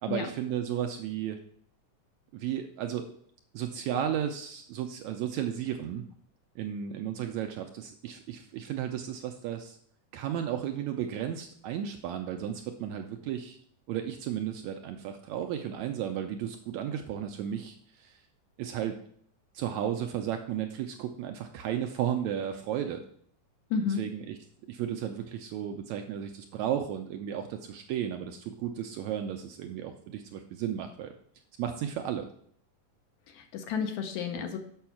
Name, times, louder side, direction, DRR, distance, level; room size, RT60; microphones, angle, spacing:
voice 1, 0.0-1.4 2.3-3.1 3.5-6.0 6.6-9.8 10.1-13.6 13.9-18.2 18.6-19.0 19.5-23.0 23.9-24.4 24.7-31.1 31.6-32.3, right 10 dB, 80° right, 5 dB, 1.7 m, -34 dB
voice 2, 23.7-24.1 33.3-34.6, left 6 dB, 75° left, 5 dB, 2.0 m, -31 dB
7.0 x 5.6 x 5.8 m, 0.62 s
omnidirectional pair, 3.7 m